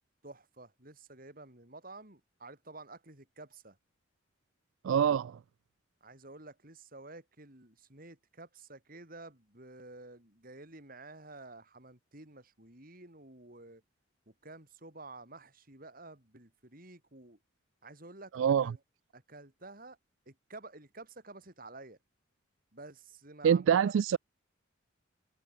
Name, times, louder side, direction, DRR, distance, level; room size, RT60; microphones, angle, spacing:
voice 1, 0.2-3.8 6.0-13.8 14.3-17.4 17.8-18.3 18.6-18.8 19.1-20.0 20.2-22.0 22.7-23.9, right 2 dB, 45° right, 5.1 m, -51 dB
voice 2, 4.8-5.4 18.3-18.7 23.4-24.2, right 8 dB, 75° right, 0.3 m, -25 dB
head